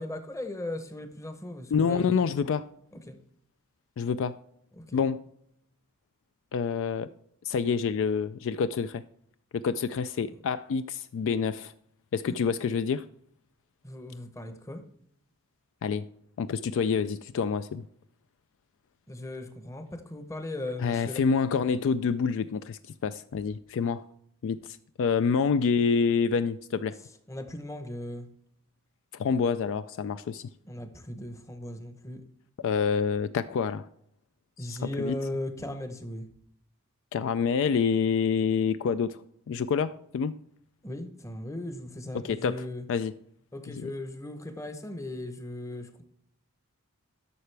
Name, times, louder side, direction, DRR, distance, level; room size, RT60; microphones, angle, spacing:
voice 1, 0.0-2.3 2.9-3.2 4.8-5.1 12.3-12.4 13.8-14.9 19.1-21.2 27.3-28.3 30.6-32.2 34.6-36.3 40.8-42.8 43.5-46.0, left 1 dB, 15° left, 0.8 m, -37 dB
voice 2, 1.7-2.7 4.0-4.4 4.9-5.2 6.5-7.1 7.4-9.0 9.5-11.7 12.1-13.1 15.8-16.1 16.4-17.8 20.8-24.0 24.4-27.0 29.1-30.5 32.6-33.8 34.6-35.1 37.1-39.2 39.5-40.4 42.1-43.1 43.8-43.9, left 6 dB, 60° left, 0.3 m, -27 dB
11.0 x 6.7 x 3.3 m
head